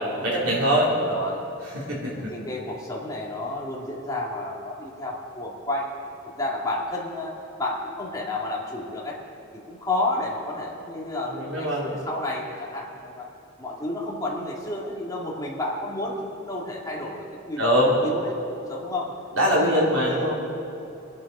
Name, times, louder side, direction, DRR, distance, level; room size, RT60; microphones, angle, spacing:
voice 1, 0.1-0.9 1.7-2.3 11.3-11.9 17.6-17.9 19.3-20.4, equal, 75° right, -5 dB, 3.5 m, -22 dB
voice 2, 0.9-1.4 2.1-9.2 9.7-13.3 13.6-17.7 18.0-19.1 19.5-20.4, left 1 dB, 15° left, -4 dB, 2.2 m, -31 dB
22.5 x 9.5 x 5.5 m, 2.9 s
head